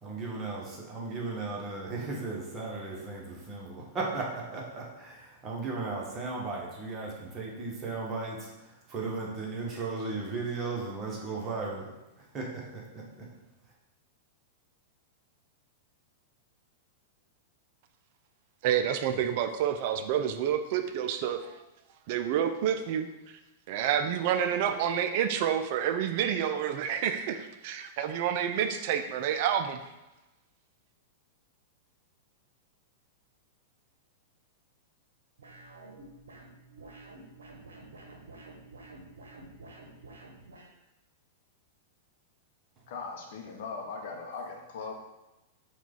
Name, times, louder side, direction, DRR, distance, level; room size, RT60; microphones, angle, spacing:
voice 1, 0.0-11.9 12.2-13.3, right 3 dB, 25° right, -3 dB, 1.1 m, -36 dB
voice 2, 18.6-21.6 22.1-23.1 23.7-29.8, right 9 dB, 45° right, 8 dB, 0.4 m, -29 dB
sound 1, 35.4-40.7, right 2 dB, 65° right, 0.8 m, -49 dB
voice 3, 42.9-44.9, left 4 dB, 50° left, 1 dB, 0.7 m, -39 dB
4.6 x 2.4 x 3.8 m, 1.0 s
figure-of-eight pair, 95°, 0 cm